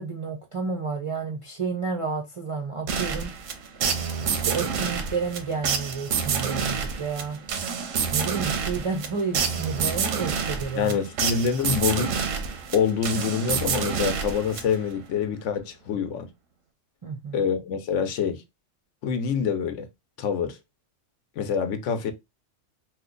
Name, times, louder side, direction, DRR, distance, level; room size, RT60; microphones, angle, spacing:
voice 1, 0.0-3.3 4.3-7.4 8.1-11.0 17.0-17.4, right 5 dB, 50° right, 0.4 m, -31 dB
sound 1, 2.9-15.0, right 6 dB, 85° right, 1.0 m, -28 dB
voice 2, 10.8-12.1 12.7-16.3 17.3-18.4 19.0-19.9 20.2-20.6 21.4-22.1, left 6 dB, 75° left, 0.9 m, -26 dB
2.9 x 2.1 x 3.7 m
omnidirectional pair, 1.3 m